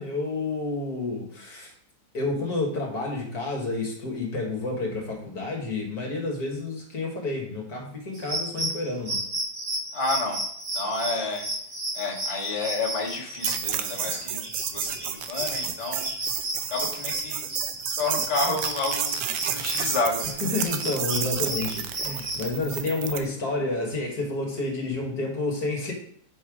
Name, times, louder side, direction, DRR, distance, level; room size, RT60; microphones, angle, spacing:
voice 1, 0.0-1.7 2.1-9.3 20.4-25.9, left 3 dB, 55° left, 0 dB, 1.8 m, -30 dB
sound 1, 8.1-22.4, right 1 dB, 50° right, 2.6 m, -33 dB
voice 2, 9.9-10.4 10.7-11.4 11.9-16.1 16.7-17.4 18.0-19.2 19.5-20.4, left 3 dB, 25° left, -4 dB, 1.5 m, -30 dB
sound 2, 13.4-23.3, right 10 dB, 80° right, 1.3 m, -31 dB
5.9 x 5.4 x 4.9 m, 0.63 s
omnidirectional pair, 2.0 m